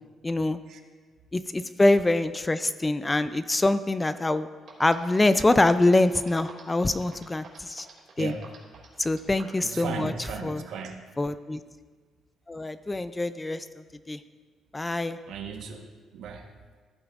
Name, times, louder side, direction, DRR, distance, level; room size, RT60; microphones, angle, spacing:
voice 1, 0.2-0.6 1.3-4.5 4.8-7.9 8.2-8.3 9.0-10.1 10.4-10.6 11.2-11.6 12.5-13.7 14.1-14.2 14.7-15.2, left 2 dB, 15° left, 12 dB, 0.3 m, -24 dB
sound 1, 4.7-9.6, right 5 dB, 55° right, 2.3 m, -47 dB
voice 2, 9.6-11.0 15.3-15.8 16.1-16.4, right 5 dB, 75° right, 4 dB, 1.1 m, -36 dB
14.5 x 8.6 x 2.4 m, 1.5 s
cardioid pair, 125°, 0 cm